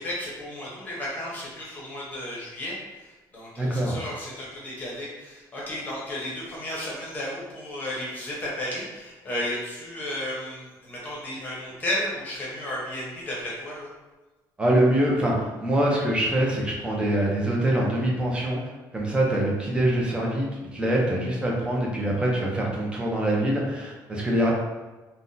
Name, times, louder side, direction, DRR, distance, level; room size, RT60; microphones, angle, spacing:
voice 1, 0.0-13.9, left 1 dB, 20° left, -5 dB, 0.9 m, -33 dB
voice 2, 3.6-4.0 14.6-18.6 18.9-24.5, right 1 dB, 15° right, -2 dB, 0.6 m, -24 dB
2.6 x 2.2 x 3.7 m, 1.2 s
cardioid pair, 175°, 8 cm